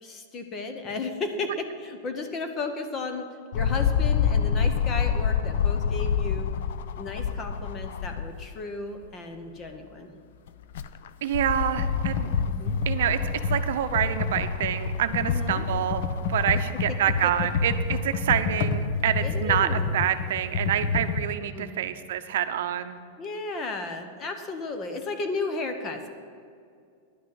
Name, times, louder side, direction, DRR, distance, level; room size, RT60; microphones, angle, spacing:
voice 1, 0.0-3.3 3.5-6.5 7.0-10.1 12.5-12.8 15.2-15.6 17.2-17.3 19.2-19.8 21.5-21.8 23.2-26.1, left 3 dB, 25° left, 6 dB, 0.9 m, -34 dB
sound 1, 3.5-8.6 9.0-9.1 10.5-19.0 19.8-19.9, left 7 dB, 75° left, 0.5 m, -29 dB
voice 2, 11.2-12.3 12.9-13.2 13.5-16.0 16.3-23.0, right 10 dB, 75° right, 9 dB, 0.6 m, -27 dB
Computer keyboard, 11.7-21.2, left 4 dB, 50° left, 0.8 m, -28 dB
11.0 x 6.2 x 7.8 m, 2.3 s
supercardioid pair, 165°, 0 cm